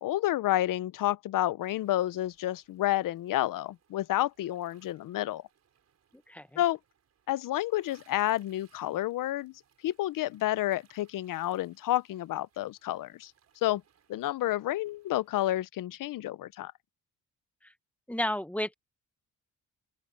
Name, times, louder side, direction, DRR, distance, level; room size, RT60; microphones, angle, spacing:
voice 1, 0.0-5.4 6.6-6.8 7.3-9.5 9.8-13.3 13.6-13.8 14.1-16.7, left 14 dB, 75° left, 0.6 m, -30 dB
sound 1, 1.6-15.6, right 8 dB, 50° right, 5.5 m, -69 dB
voice 2, 6.3-6.6 17.6-17.7 18.1-18.7, left 1 dB, 5° left, 0.9 m, -32 dB
open air
wide cardioid pair, 170°, 33 cm